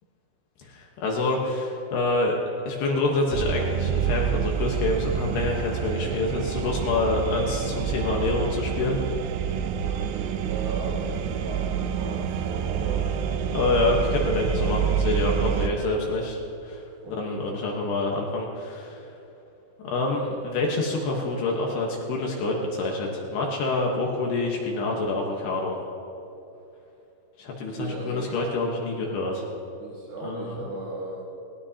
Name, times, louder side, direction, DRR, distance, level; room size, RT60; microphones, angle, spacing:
voice 1, 0.6-2.4 2.7-9.0 13.5-16.4 16.6-16.8 17.1-19.0 19.8-25.8 27.4-29.5 30.2-30.5, left 2 dB, 70° left, -1 dB, 3.0 m, -27 dB
sound 1, 3.3-15.7, right 8 dB, 80° right, 2.3 m, -27 dB
voice 2, 9.8-13.1 17.0-17.4 27.4-28.4 29.8-31.2, right 2 dB, 65° right, -10 dB, 5.6 m, -37 dB
19.0 x 17.5 x 2.9 m, 2.9 s
omnidirectional pair, 5.6 m